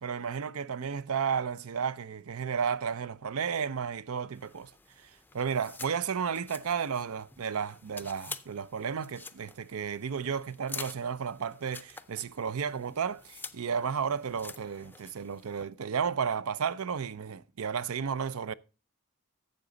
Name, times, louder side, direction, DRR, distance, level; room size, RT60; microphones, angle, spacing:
voice 1, 0.0-4.7 5.0-18.5, right 6 dB, 75° right, 0.5 m, -33 dB
sound 1, 4.3-15.6, left 4 dB, 10° left, 0.5 m, -48 dB
12.0 x 7.7 x 3.9 m
head